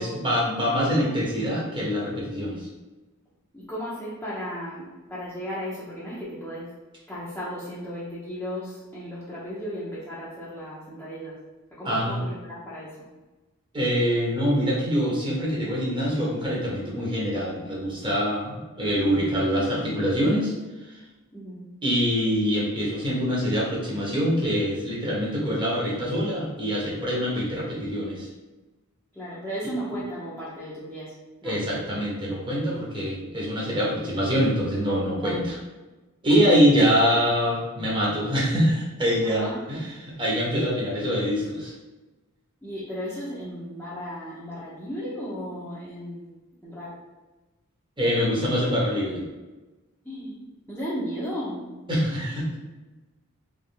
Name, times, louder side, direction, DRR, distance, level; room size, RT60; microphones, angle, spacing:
voice 1, 0.0-2.7 11.8-12.2 13.7-20.5 20.8-21.0 21.8-28.3 31.4-35.6 36.2-39.9 40.2-41.7 48.0-49.2 51.9-52.6, equal, 20° right, -5 dB, 1.2 m, -24 dB
voice 2, 3.5-6.7 7.1-11.3 11.7-13.0 21.3-21.6 29.1-31.1 31.4-31.6 35.2-35.4 39.2-39.7 42.6-46.9 50.0-50.4 50.7-51.6, equal, 5° left, -11 dB, 0.9 m, -35 dB
3.7 x 3.3 x 3.4 m, 1.2 s
head